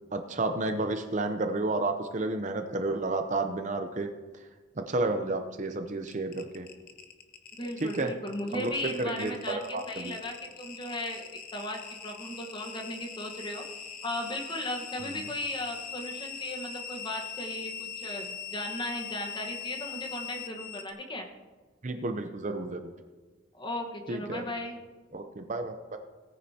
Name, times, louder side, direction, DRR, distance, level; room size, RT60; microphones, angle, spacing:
voice 1, 0.1-4.1 4.8-6.7 7.8-8.1 8.5-10.1 15.1-15.2 21.8-22.9 24.1-24.4 25.1-26.0, right 2 dB, 35° right, 6 dB, 0.6 m, -31 dB
sound 1, 6.0-20.9, left 6 dB, 45° left, 1.0 m, -41 dB
voice 2, 7.6-13.7 14.0-21.3 23.5-24.8, left 1 dB, 25° left, 3 dB, 1.2 m, -36 dB
17.5 x 9.6 x 2.8 m, 1.4 s
head